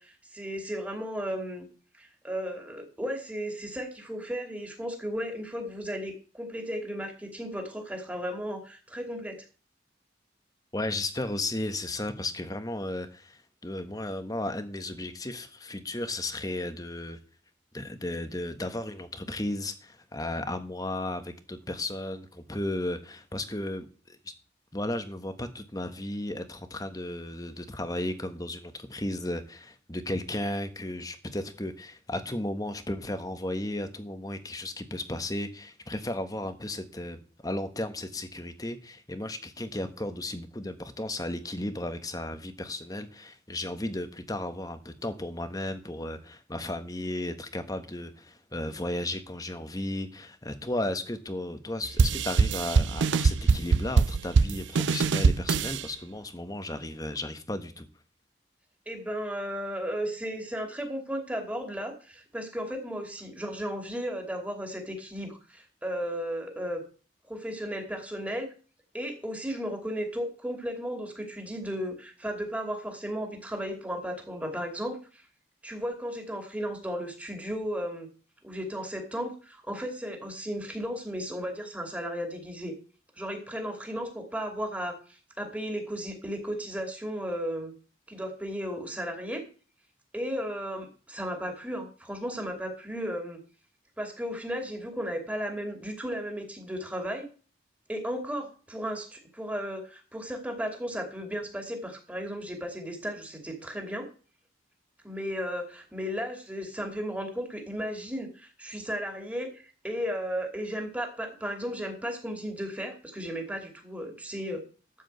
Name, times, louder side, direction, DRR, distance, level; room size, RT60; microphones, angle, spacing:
voice 1, 0.0-1.7 1.9-9.4 58.9-66.8 67.3-68.5 68.9-75.2 75.6-78.1 78.4-82.7 83.2-87.7 88.1-89.4 90.1-93.4 94.0-97.3 97.9-104.1 105.0-114.7, equal, 10° right, 2.7 m, -35 dB
voice 2, 10.7-17.2 17.7-23.9 24.2-24.3 24.7-57.9, left 1 dB, 20° left, 1.3 m, -34 dB
sound 1, 52.0-55.8, right 4 dB, 70° right, 0.4 m, -23 dB
13.0 x 5.0 x 8.1 m
head